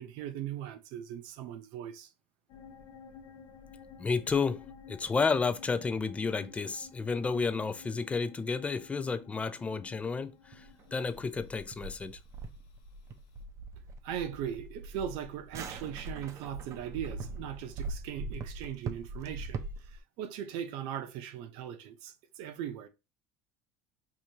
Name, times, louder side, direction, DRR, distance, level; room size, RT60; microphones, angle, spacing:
voice 1, 0.0-2.1 14.0-22.9, right 9 dB, 70° right, 0.8 m, -39 dB
sound 1, 2.5-13.4, left 6 dB, 65° left, 0.8 m, -53 dB
voice 2, 4.0-10.7 10.9-12.2, left 4 dB, 15° left, 0.4 m, -31 dB
sound 2, 10.5-20.0, right 3 dB, 40° right, 0.6 m, -42 dB
4.8 x 2.9 x 2.8 m
supercardioid pair, 125°, 8 cm